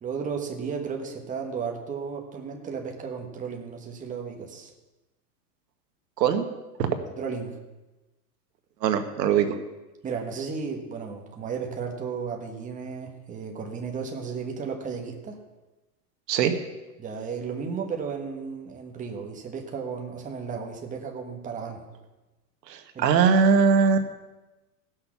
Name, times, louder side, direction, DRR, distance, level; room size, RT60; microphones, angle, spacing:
voice 1, 0.0-4.7 6.9-7.6 10.0-15.4 17.0-21.8 22.9-23.1, right 5 dB, 15° right, 2 dB, 1.4 m, -34 dB
voice 2, 8.8-9.5 16.3-16.5 22.7-24.1, right 6 dB, 85° right, 8 dB, 1.5 m, -21 dB
16.5 x 6.5 x 6.0 m, 1.1 s
supercardioid pair, 145°, 48 cm